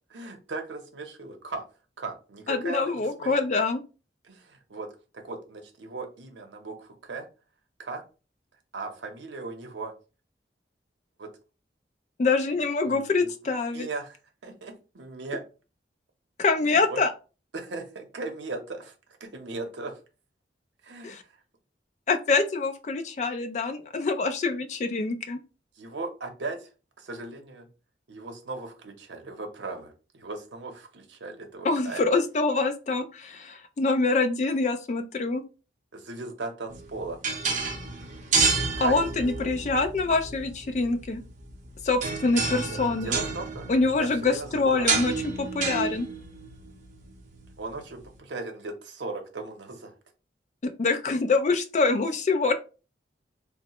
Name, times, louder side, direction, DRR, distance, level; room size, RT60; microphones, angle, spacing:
voice 1, 0.1-1.6 2.0-3.4 4.2-7.3 7.8-8.0 8.7-9.9 11.2-11.3 12.8-13.3 13.7-15.4 16.6-17.0 17.5-18.9 19.2-20.0 20.8-21.4 25.7-26.7 27.0-27.7 28.1-32.0 35.9-37.2 38.8-39.5 42.5-45.0 47.6-50.0, right 3 dB, 80° right, 5 dB, 0.7 m, -38 dB
voice 2, 2.5-3.8 12.2-13.9 16.4-17.1 21.0-21.2 22.1-25.4 31.6-35.4 38.8-41.2 41.8-43.1 43.7-45.1 45.4-46.1 50.6-52.5, left 3 dB, 40° left, 9 dB, 0.3 m, -25 dB
sound 1, 36.7-48.1, right 4 dB, 40° right, 0.6 m, -31 dB
3.1 x 2.0 x 2.9 m, 0.33 s
head